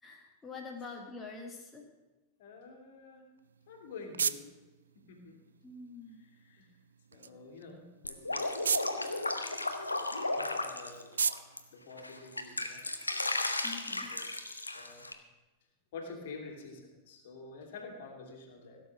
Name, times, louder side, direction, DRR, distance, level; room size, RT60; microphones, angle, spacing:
voice 1, 0.0-1.8 5.6-6.2 13.6-14.1, left 4 dB, 15° left, 0 dB, 1.7 m, -45 dB
voice 2, 2.4-3.2 3.7-4.5 4.9-5.4 6.2-6.7 7.1-8.8 10.3-11.4 11.7-12.8 13.9-14.3 14.7-15.1 15.9-18.8, left 4 dB, 55° left, 2 dB, 2.7 m, -48 dB
sound 1, 3.4-12.8, right 6 dB, 70° right, 0.4 m, -39 dB
Drip, 8.0-11.6 12.0-15.1, left 2 dB, 80° left, 0.9 m, -35 dB
16.5 x 7.1 x 6.2 m, 1.1 s
figure-of-eight pair, 90°, 0 cm